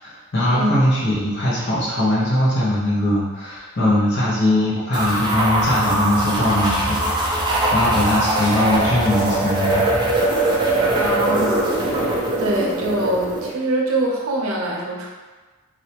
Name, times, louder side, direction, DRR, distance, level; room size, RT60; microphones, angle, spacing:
voice 1, 0.0-9.9, left 1 dB, 55° left, -7 dB, 1.0 m, -21 dB
sound 1, 4.9-13.5, right 1 dB, 20° right, 0.4 m, -21 dB
voice 2, 11.0-15.1, right 1 dB, 75° right, -2 dB, 0.7 m, -24 dB
3.3 x 2.7 x 2.9 m, 1.3 s
head